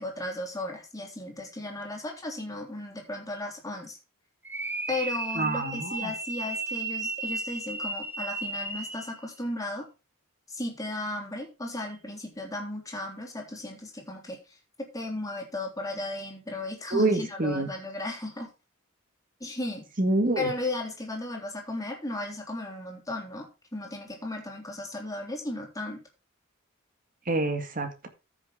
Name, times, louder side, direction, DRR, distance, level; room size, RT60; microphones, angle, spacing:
voice 1, 0.0-4.0 4.9-9.8 10.5-14.6 14.9-18.5 19.4-19.8 20.3-26.0, left 2 dB, 15° left, 1 dB, 3.4 m, -35 dB
sound 1, 4.4-9.2, right 3 dB, 10° right, 1.1 m, -34 dB
voice 2, 5.4-6.1 16.9-17.7 20.0-20.5 27.3-28.1, right 2 dB, 40° right, 7 dB, 1.9 m, -26 dB
14.0 x 6.6 x 3.7 m, 0.29 s
head